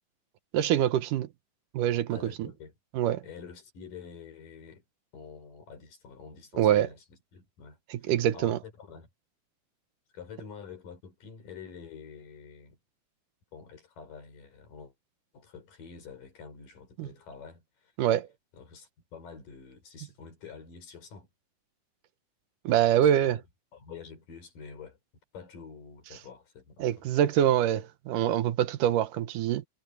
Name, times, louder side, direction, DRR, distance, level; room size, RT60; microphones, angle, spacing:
voice 1, 0.5-1.3 1.7-2.5 2.9-3.2 6.6-6.9 7.9-8.6 17.0-17.1 18.0-18.3 22.6-23.4 26.8-29.7, right 11 dB, 80° right, 2.6 m, -25 dB
voice 2, 2.1-2.7 3.2-4.8 5.1-9.1 10.1-12.8 13.5-14.9 15.3-17.9 18.5-21.3 23.0-23.4 23.7-25.0 25.3-27.1, left 6 dB, 85° left, 6.6 m, -47 dB
omnidirectional pair, 3.7 m